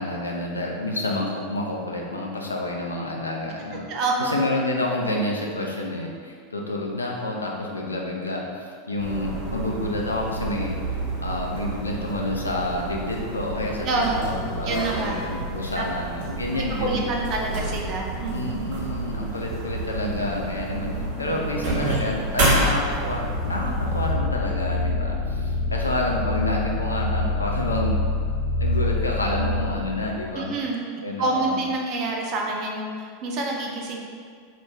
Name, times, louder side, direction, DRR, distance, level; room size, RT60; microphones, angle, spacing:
voice 1, 0.0-3.8 4.2-10.8 11.2-17.1 18.3-20.9 21.2-28.0 28.6-30.5 31.0-31.6, left 1 dB, 85° left, -1 dB, 0.3 m, -29 dB
voice 2, 3.9-4.4 13.8-14.3 14.6-15.2 15.8-15.9 16.5-18.8 30.3-34.0, right 2 dB, 40° right, -1 dB, 0.4 m, -27 dB
sound 1, 9.0-24.1, right 2 dB, 60° right, 0.9 m, -29 dB
sound 2, 22.8-30.3, left 2 dB, 40° left, 0.7 m, -26 dB
2.3 x 2.2 x 3.3 m, 2.1 s
figure-of-eight pair, 85°, 0 cm